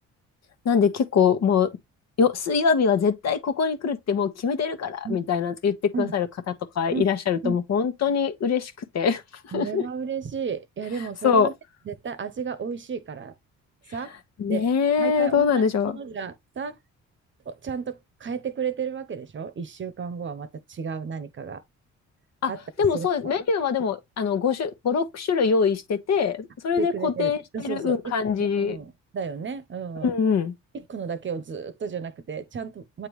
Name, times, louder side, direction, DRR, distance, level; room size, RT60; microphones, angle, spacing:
voice 1, 0.6-1.7 2.2-6.3 6.7-9.2 9.5-9.8 11.2-11.5 14.4-16.0 22.4-22.5 22.8-28.8 30.0-30.5, left 6 dB, 60° left, 1.2 m, -23 dB
voice 2, 9.5-11.5 11.9-13.3 13.9-14.2 14.5-14.6 15.0-16.8 17.5-21.6 22.5-23.3 26.8-28.1 28.4-30.1 30.7-33.1, right 6 dB, 40° right, 0.9 m, -33 dB
8.5 x 3.6 x 3.1 m
cardioid pair, 90°, 30 cm